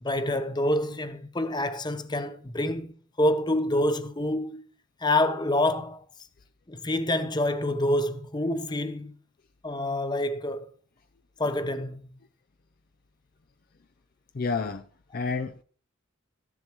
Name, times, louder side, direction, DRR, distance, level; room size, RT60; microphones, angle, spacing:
voice 1, 0.0-2.9 3.2-4.6 5.0-6.0 6.7-9.1 9.6-10.7 11.4-12.1, left 1 dB, 20° left, 0.8 m, -27 dB
voice 2, 14.3-14.8 15.1-15.6, left 4 dB, 45° left, 0.5 m, -29 dB
14.5 x 10.5 x 3.1 m
head